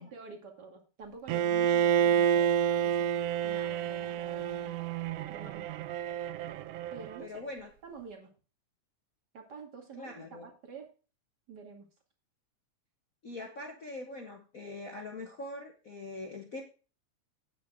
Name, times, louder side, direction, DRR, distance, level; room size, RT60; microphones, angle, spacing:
voice 1, 0.0-4.8 5.3-5.9 6.9-7.4 7.8-8.3 9.3-10.9 11.5-11.9, right 4 dB, 35° right, 2 dB, 2.5 m, -48 dB
Bowed string instrument, 1.3-7.3, right 9 dB, 85° right, 1.4 m, -29 dB
voice 2, 7.2-7.7 10.0-10.5 13.2-16.6, left 2 dB, 55° left, 1 dB, 0.9 m, -42 dB
9.4 x 9.1 x 3.7 m, 0.35 s
omnidirectional pair, 3.3 m